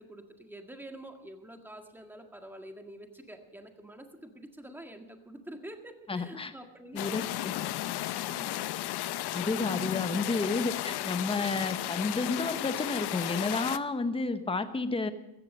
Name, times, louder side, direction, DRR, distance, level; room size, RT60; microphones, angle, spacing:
voice 1, 0.0-7.2 8.2-8.6, right 1 dB, 5° right, 4 dB, 1.8 m, -47 dB
voice 2, 6.1-6.5 6.9-7.5 9.3-15.1, left 3 dB, 10° left, 10 dB, 1.0 m, -31 dB
sound 1, 7.0-13.8, left 14 dB, 55° left, 0.7 m, -34 dB
16.0 x 14.0 x 5.5 m, 0.96 s
cardioid pair, 130°, 49 cm